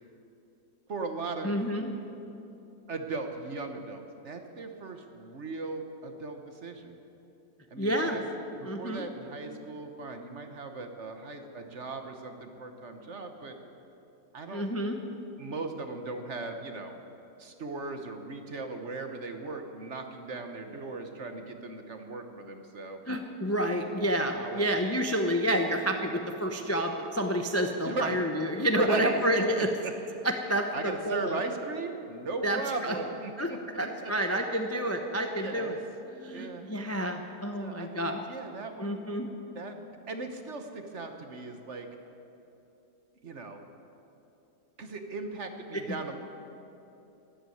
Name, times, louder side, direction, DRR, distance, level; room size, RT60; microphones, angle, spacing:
voice 1, 0.9-1.6 2.9-7.0 7.7-8.2 8.6-13.6 14.3-14.6 15.1-17.0 17.4-23.0 24.0-24.6 27.8-28.2 28.6-29.2 29.5-30.3 30.7-34.1 35.3-35.8 36.3-36.7 37.6-39.0 39.5-39.8 40.1-41.9 43.2-43.6 44.8-46.2, right 3 dB, 45° right, 6 dB, 1.3 m, -38 dB
voice 2, 1.4-1.9 7.8-8.2 8.7-9.0 14.5-15.0 23.1-29.7 30.2-31.4 32.4-32.9 33.4-33.5 33.8-35.8 36.2-38.2 38.8-39.3, equal, 15° left, 4 dB, 0.5 m, -29 dB
13.0 x 11.5 x 9.2 m, 2.9 s
omnidirectional pair, 1.8 m